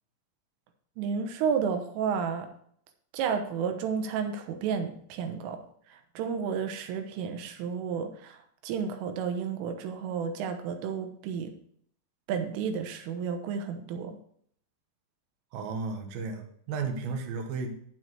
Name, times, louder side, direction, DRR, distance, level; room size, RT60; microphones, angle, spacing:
voice 1, 1.0-2.5 3.1-5.6 5.9-11.5 12.3-14.2, right 6 dB, 85° right, 6 dB, 3.6 m, -32 dB
voice 2, 15.5-17.8, right 4 dB, 65° right, 3 dB, 2.6 m, -34 dB
10.0 x 8.1 x 4.8 m, 0.64 s
omnidirectional pair, 5.6 m